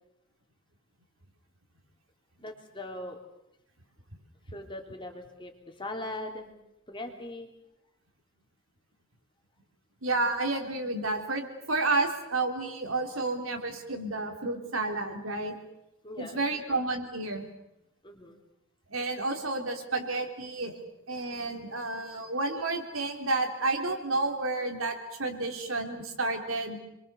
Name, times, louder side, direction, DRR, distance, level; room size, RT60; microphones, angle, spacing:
voice 1, 2.4-3.2 4.5-6.5 6.9-7.5 16.0-16.8 18.0-18.4, left 1 dB, 25° left, 3 dB, 3.2 m, -40 dB
voice 2, 10.0-15.6 16.2-17.5 18.9-20.7 21.1-26.8, right 2 dB, 75° right, 3 dB, 3.8 m, -31 dB
29.0 x 23.0 x 7.0 m, 0.87 s
head